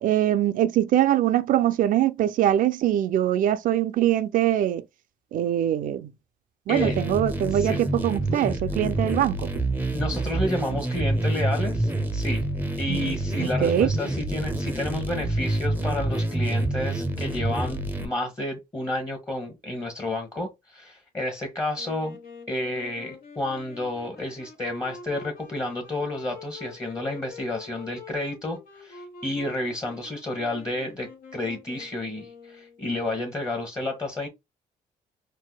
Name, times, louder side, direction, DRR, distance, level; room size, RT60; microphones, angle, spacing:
voice 1, 0.0-4.8 5.3-6.1 6.7-9.5 12.9-13.9, right 11 dB, 65° right, 0.4 m, -23 dB
sound 1, 6.8-18.1, right 1 dB, 15° right, 0.6 m, -27 dB
voice 2, 9.9-12.4 12.8-22.2 22.5-34.3, left 2 dB, 20° left, 1.1 m, -31 dB
Wind instrument woodwind instrument, 21.7-32.9, left 4 dB, 75° left, 1.3 m, -46 dB
4.6 x 2.1 x 2.2 m
cardioid pair, 80°, 15 cm